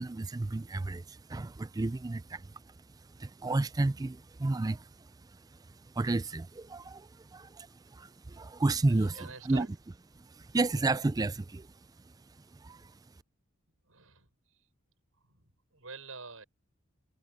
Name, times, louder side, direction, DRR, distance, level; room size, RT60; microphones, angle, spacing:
voice 1, 0.0-2.5 3.2-4.8 6.0-9.7 10.2-11.7 12.6-12.9, right 2 dB, 20° right, 0.4 m, -32 dB
voice 2, 8.9-9.7 13.8-14.7 15.1-16.5, right 4 dB, 80° right, 7.1 m, -48 dB
head